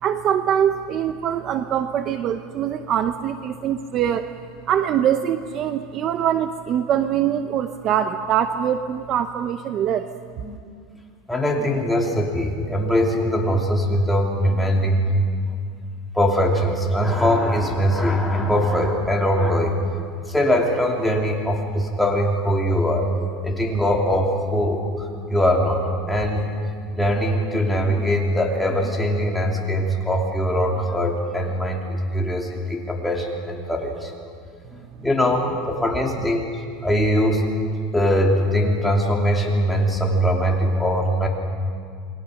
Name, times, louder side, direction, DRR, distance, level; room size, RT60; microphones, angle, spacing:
voice 1, 0.0-4.3 4.7-10.1, right 9 dB, 35° right, 9 dB, 0.8 m, -23 dB
voice 2, 11.3-15.2 16.1-19.8 20.3-23.1 23.4-26.5 26.9-34.1 35.0-36.5 36.8-37.4 37.9-41.3, equal, 5° left, -1 dB, 2.9 m, -21 dB
28.5 x 21.5 x 6.5 m, 2.2 s
supercardioid pair, 155°, 0 cm